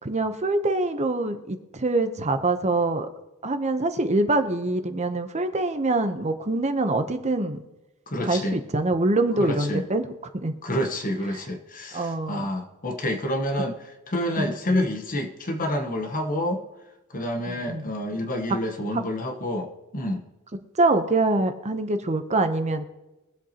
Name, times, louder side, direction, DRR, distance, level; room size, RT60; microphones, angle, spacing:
voice 1, 0.0-3.1 3.4-7.6 8.2-10.0 10.3-10.5 11.9-12.5 14.4-14.5 17.5-17.9 18.9-19.0 20.8-22.8, right 2 dB, 30° right, 8 dB, 0.8 m, -24 dB
voice 2, 8.1-8.6 9.4-9.8 10.6-13.7 14.1-16.6 17.1-20.2, left 1 dB, 40° left, 5 dB, 1.2 m, -28 dB
23.0 x 7.9 x 2.9 m, 1.0 s
head